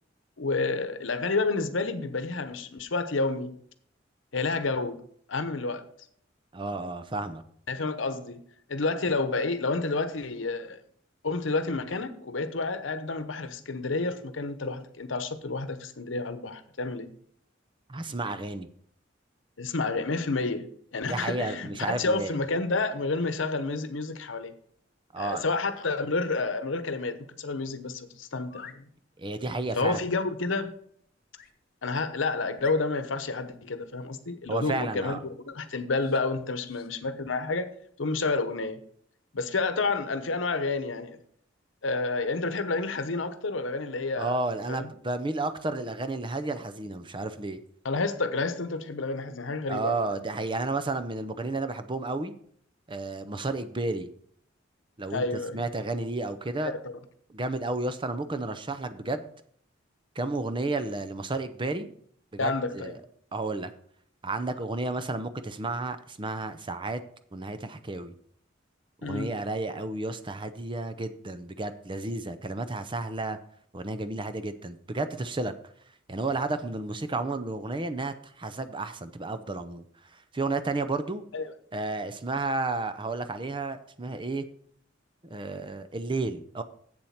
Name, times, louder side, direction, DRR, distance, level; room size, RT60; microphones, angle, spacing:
voice 1, 0.4-3.5 4.3-5.0 5.3-5.8 7.7-8.4 8.7-10.8 11.2-17.1 19.6-24.5 25.2-28.9 29.7-30.7 31.8-37.7 38.0-38.8 39.3-41.2 41.8-44.4 44.7-44.9 47.8-50.0 55.1-55.6 56.6-56.9 62.4-63.0 69.0-69.3 81.3-81.5, left 3 dB, 80° left, 0.9 m, -30 dB
voice 2, 6.5-7.4 17.9-18.7 21.0-22.4 25.1-25.4 29.2-30.0 34.5-35.2 44.2-47.6 49.7-52.3 52.9-54.1 55.0-55.2 55.5-56.7 57.3-59.3 60.2-61.9 62.3-63.0 63.3-63.7 64.2-67.0 67.3-68.1 69.0-73.4 73.7-75.5 76.1-79.8 80.3-81.2 81.7-84.4 85.2-86.6, right 2 dB, 25° right, 0.6 m, -32 dB
sound 1, 28.4-28.8 31.3-31.5 32.1-32.2 32.6-33.2 35.9-36.2 36.6-36.9, left 7 dB, 50° left, 0.9 m, -46 dB
7.9 x 7.3 x 5.8 m
head